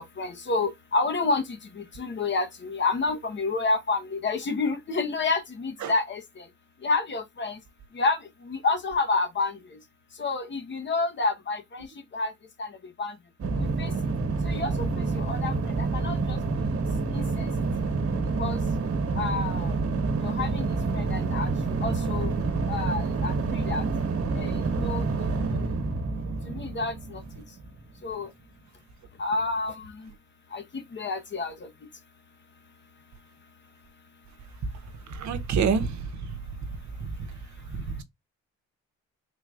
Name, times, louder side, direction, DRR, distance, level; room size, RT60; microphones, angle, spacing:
voice 1, 0.0-6.4 6.8-7.6 7.9-8.2 8.4-9.6 10.2-11.9 12.1-12.3 12.6-12.7 13.0-13.1 13.8-13.9 14.4-16.4 17.1-17.5 18.4-18.6 19.2-19.7 20.2-20.7 20.9-21.5 21.8-22.3 22.7-23.8 24.3-25.0 25.4-25.5 26.5-27.2 28.0-28.3 29.2-30.1 30.5-31.7, left 3 dB, 40° left, 1.0 m, -29 dB
sound 1, 13.4-27.8, right 3 dB, 50° right, 1.2 m, -28 dB
voice 2, 35.2-35.9 37.0-37.1 37.7-38.0, right 6 dB, 65° right, 0.9 m, -26 dB
3.8 x 3.2 x 2.4 m
cardioid pair, 90°, 30 cm